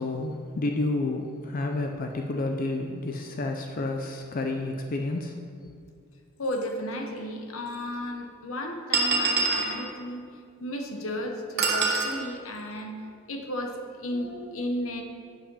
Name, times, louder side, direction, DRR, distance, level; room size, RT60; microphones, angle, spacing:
voice 1, 0.0-5.5, left 2 dB, 40° left, 3 dB, 0.5 m, -30 dB
voice 2, 6.4-10.2 10.6-15.0, left 1 dB, 75° left, 3 dB, 1.1 m, -34 dB
sound 1, 6.9-7.0 7.9-8.0 8.9-9.8 11.6-12.1, right 4 dB, 50° right, 1.2 m, -24 dB
8.3 x 6.2 x 5.5 m, 2.2 s
head